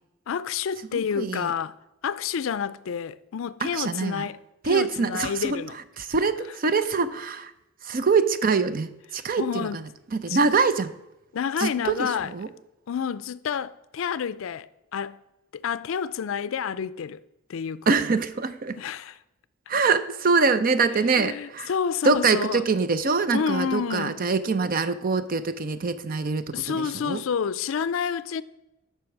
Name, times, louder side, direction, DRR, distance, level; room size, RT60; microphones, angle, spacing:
voice 1, 0.3-1.7 2.0-4.4 4.6-5.7 9.4-9.8 10.3-10.4 11.3-12.3 12.9-15.2 15.5-17.2 17.5-17.9 18.8-19.1 21.2-22.6 23.3-24.2 26.5-28.4, left 7 dB, 70° left, 0.4 m, -29 dB
voice 2, 0.9-1.5 3.6-4.3 4.6-5.6 6.0-7.5 7.8-9.8 10.1-10.9 11.6-12.5 17.9-18.8 19.7-21.7 22.0-27.2, right 4 dB, 45° right, 0.5 m, -24 dB
7.9 x 5.7 x 7.1 m
head